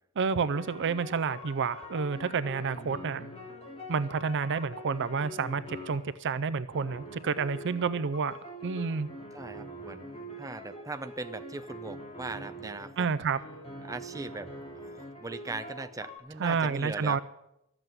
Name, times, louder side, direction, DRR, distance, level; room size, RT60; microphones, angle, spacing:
voice 1, 0.2-3.3 3.9-8.4 8.6-9.1 13.0-13.4 16.4-17.2, right 5 dB, 55° right, 15 dB, 0.5 m, -29 dB
sound 1, 0.5-6.2 6.7-13.0 13.4-16.2, equal, 25° left, 2.7 m, -44 dB
voice 2, 9.3-13.1 13.8-14.5 14.9-17.2, right 2 dB, 15° right, 9 dB, 0.6 m, -39 dB
12.5 x 7.9 x 9.1 m, 0.84 s
head